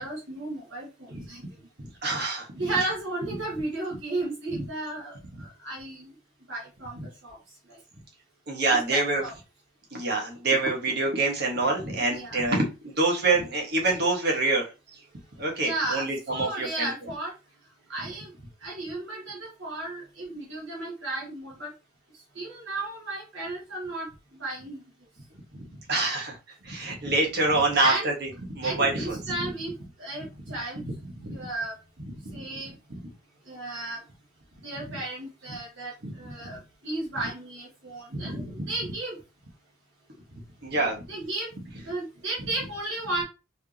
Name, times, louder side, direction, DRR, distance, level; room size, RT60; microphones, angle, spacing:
voice 1, 0.0-1.4 2.5-6.1 6.5-7.4 7.7-7.8 8.7-9.3 11.9-12.4 15.6-17.3 17.9-18.3 18.6-21.7 22.3-24.1 24.4-24.8 27.7-28.1 28.6-29.7 30.0-30.8 31.2-31.7 32.3-32.7 33.5-34.0 34.6-39.2 41.1-41.5 41.8-43.2, right 2 dB, 65° right, -4 dB, 1.6 m, -34 dB
voice 2, 1.8-2.5 8.5-9.2 9.9-14.7 15.4-16.9 25.5-26.4 26.6-29.5 31.2-31.4 32.0-32.4 34.9-35.0 36.0-36.1 36.4-36.6 38.1-38.7 40.6-41.0, right 2 dB, 50° right, 0 dB, 1.4 m, -26 dB
4.7 x 3.3 x 2.9 m, 0.29 s
head